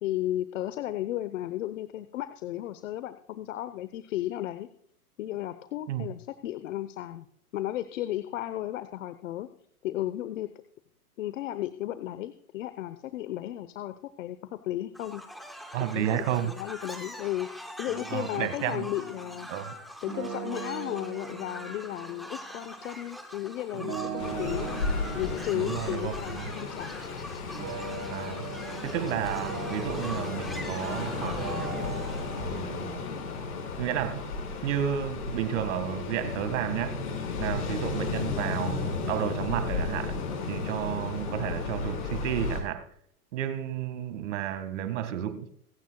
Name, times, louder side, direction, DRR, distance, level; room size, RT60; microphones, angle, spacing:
voice 1, 0.0-4.7 5.2-7.3 7.5-9.5 9.8-10.5 11.2-15.2 15.9-17.5 17.8-19.5 20.0-24.8 25.1-26.9, left 14 dB, 55° left, 1.0 m, -34 dB
sound 1, 15.0-32.4, equal, ahead, 0.4 m, -43 dB
voice 2, 15.7-16.5 18.1-18.9 19.5-19.8 25.5-26.5 28.1-28.5 28.8-31.7 32.3-33.1 33.8-34.3 34.6-37.0 37.4-40.2 40.4-42.9 43.3-45.6, right 10 dB, 50° right, 1.9 m, -32 dB
sound 2, 17.9-19.7 20.0-22.5 23.7-27.1 27.5-31.0 31.3-32.6, right 6 dB, 75° right, 1.8 m, -40 dB
Ocean, 24.2-42.6, left 4 dB, 75° left, 5.3 m, -34 dB
25.0 x 9.4 x 2.3 m
hypercardioid pair, 140°, 46 cm